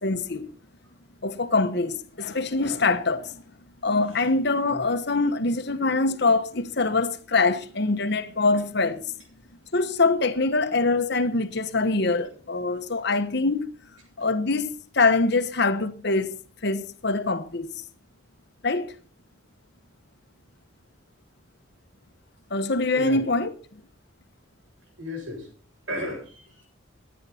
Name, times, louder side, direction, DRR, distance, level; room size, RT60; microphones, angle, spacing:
voice 1, 0.0-0.5 1.2-3.4 3.8-9.1 9.7-13.7 14.2-17.7 18.6-18.9 22.5-23.5, left 3 dB, 55° left, 1.2 m, -24 dB
voice 2, 22.9-23.2 25.0-25.5 25.9-26.7, left 1 dB, 80° right, 7.9 m, -34 dB
17.0 x 9.9 x 4.3 m
head